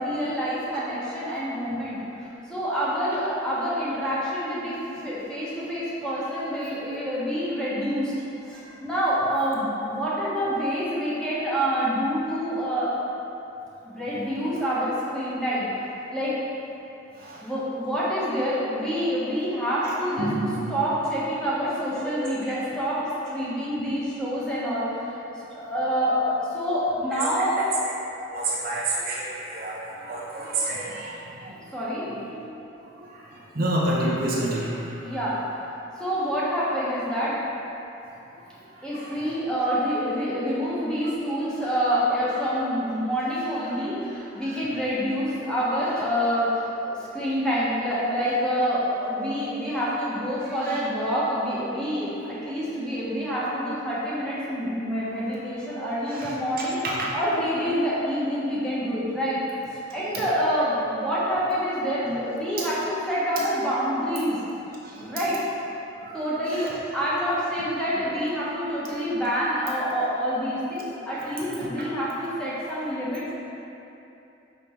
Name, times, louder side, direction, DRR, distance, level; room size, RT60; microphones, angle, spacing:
voice 1, 0.0-8.1 8.5-12.9 13.8-16.4 17.4-27.7 31.7-32.1 35.0-37.4 38.8-59.4 59.7-64.4 65.0-65.4 66.1-73.3, equal, 5° left, -9 dB, 1.3 m, -27 dB
voice 2, 19.8-20.6 22.0-22.5 27.1-27.2 27.5-27.9 28.3-31.6 32.3-32.5 32.9-33.1 33.5-35.1 38.9-39.2 44.5-44.6 55.8-56.3 56.6-57.1 60.1-60.2 64.8-65.1 66.0-66.2 66.5-66.7, right 1 dB, 45° right, -5 dB, 0.8 m, -30 dB
5.4 x 5.3 x 4.5 m, 2.9 s
head